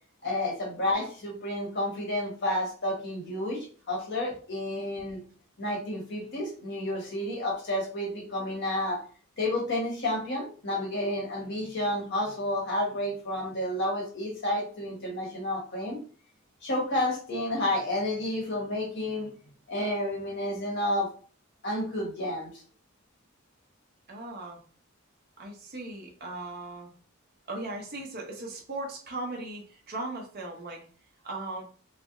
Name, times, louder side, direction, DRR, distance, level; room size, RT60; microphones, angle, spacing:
voice 1, 0.2-5.2 5.6-9.0 9.4-16.0 16.6-19.3 19.7-21.1 21.6-22.5, left 1 dB, 60° left, 0 dB, 1.3 m, -30 dB
voice 2, 24.1-24.6 25.4-26.9 27.5-30.8 31.2-31.6, right 2 dB, 50° right, 0 dB, 0.9 m, -38 dB
3.3 x 2.0 x 3.7 m, 0.41 s
head